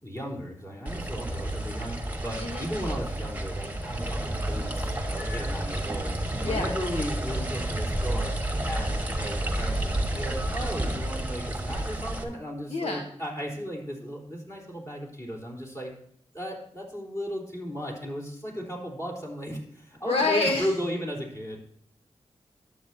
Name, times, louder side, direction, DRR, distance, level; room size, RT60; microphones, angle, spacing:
voice 1, 0.0-6.1 6.4-15.9 16.3-21.6, equal, 30° left, -1 dB, 3.8 m, -35 dB
sound 1, 0.9-12.2, right 1 dB, 15° right, 1.4 m, -30 dB
voice 2, 12.7-13.0 20.0-20.7, left 3 dB, 60° left, 1 dB, 1.2 m, -27 dB
11.5 x 7.9 x 2.8 m, 0.67 s
cardioid pair, 50°, 11 cm